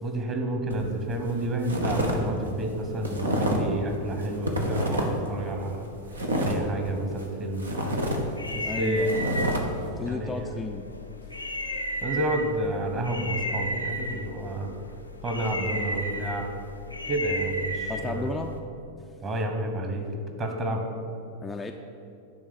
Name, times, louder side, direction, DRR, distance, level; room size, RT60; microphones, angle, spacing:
voice 1, 0.0-5.9 6.4-8.0 8.5-9.1 10.1-10.5 12.0-14.7 15.2-16.5 17.1-18.3 19.2-20.1 20.4-20.8, right 1 dB, 25° right, 3 dB, 1.2 m, -30 dB
sound 1, 0.7-0.9 1.3-2.2 2.4-3.7 4.1-5.3 5.6-7.3 7.6-9.6, right 1 dB, 75° right, 1.0 m, -28 dB
sound 2, 8.0-18.6, equal, 85° left, 0.6 m, -34 dB
voice 2, 8.6-9.2 10.0-10.9 17.9-18.5 21.4-21.7, left 3 dB, 10° left, 3 dB, 0.4 m, -33 dB
10.0 x 3.5 x 7.1 m, 2.6 s
figure-of-eight pair, 90°, 0 cm